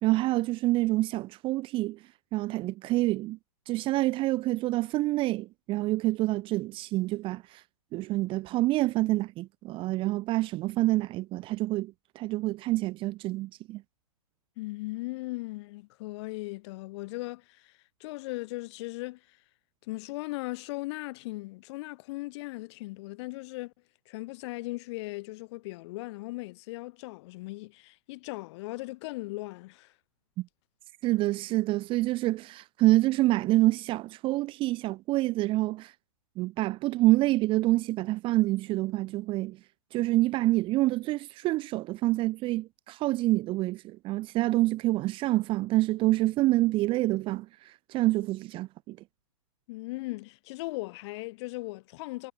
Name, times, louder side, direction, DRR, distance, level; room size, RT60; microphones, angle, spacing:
voice 1, 0.0-2.0 2.3-3.4 3.7-7.6 7.9-13.8 30.4-30.5 31.0-35.9 36.4-39.6 39.9-49.0, right 18 dB, 30° right, 0.9 m, -27 dB
voice 2, 14.6-17.7 18.0-19.2 19.9-23.7 24.0-29.9 49.7-52.3, left 21 dB, 45° left, 7.0 m, -38 dB
hypercardioid pair, 130°, 19 cm